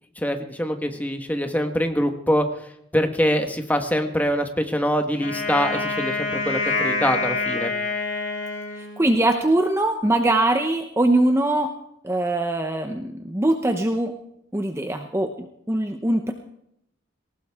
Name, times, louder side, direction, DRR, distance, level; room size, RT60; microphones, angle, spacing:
voice 1, 0.2-7.7, equal, 10° left, 5 dB, 1.4 m, -24 dB
Wind instrument woodwind instrument, 5.2-9.4, left 3 dB, 75° left, 3.6 m, -27 dB
voice 2, 8.7-11.7 12.0-14.1 14.5-16.3, right 1 dB, 15° right, 5 dB, 0.8 m, -22 dB
19.0 x 19.0 x 3.6 m, 0.76 s
head